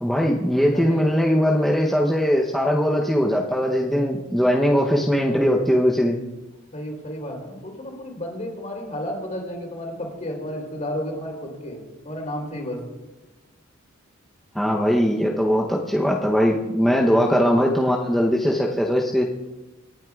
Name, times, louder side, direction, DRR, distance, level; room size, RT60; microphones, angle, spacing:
voice 1, 0.0-6.2 14.5-19.2, equal, ahead, -2 dB, 0.7 m, -20 dB
voice 2, 0.7-1.2 6.7-12.8, equal, 35° left, 0 dB, 3.3 m, -32 dB
26.0 x 9.2 x 2.4 m, 1.1 s
head